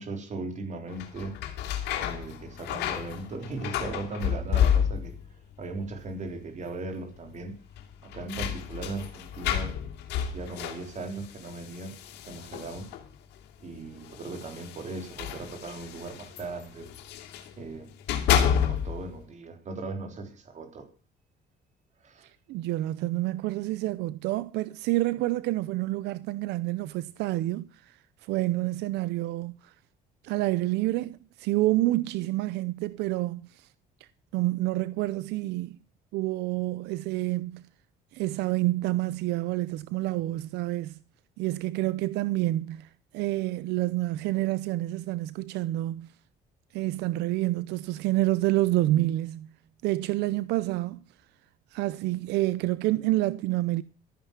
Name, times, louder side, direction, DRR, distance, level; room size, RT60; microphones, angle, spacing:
voice 1, 0.0-1.4 2.0-5.1 5.6-7.6 8.0-9.8 10.2-12.0 12.2-12.9 13.6-16.9 17.6-17.9 18.4-20.9 22.0-22.3, right 3 dB, 45° right, 3.9 m, -38 dB
sound 1, 0.9-5.3 5.6-6.2 6.5-6.6 7.7-13.1 14.0-17.5 17.9-19.1, left 9 dB, 85° left, 2.9 m, -30 dB
voice 2, 22.2-29.7 30.2-33.7 34.3-35.8 36.1-37.6 38.1-41.0 41.4-46.1 46.7-49.5 49.8-51.0 51.7-53.8, right 17 dB, 85° right, 0.6 m, -28 dB
14.5 x 9.5 x 7.3 m
cardioid pair, 110°, 17 cm